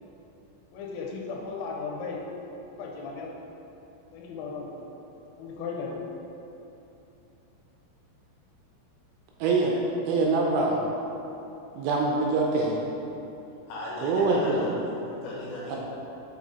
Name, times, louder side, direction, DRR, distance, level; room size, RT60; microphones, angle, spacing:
voice 1, 0.7-2.2 2.7-3.3 4.1-4.7 5.4-6.0, left 4 dB, 90° left, -2 dB, 3.4 m, -36 dB
voice 2, 9.4-9.8 10.1-10.8 11.8-12.7 14.0-14.7 15.7-15.8, right 3 dB, 80° right, -1 dB, 2.9 m, -24 dB
voice 3, 13.7-15.8, left 1 dB, 70° left, -7 dB, 3.1 m, -37 dB
7.2 x 5.1 x 4.0 m, 2.9 s
omnidirectional pair, 6.0 m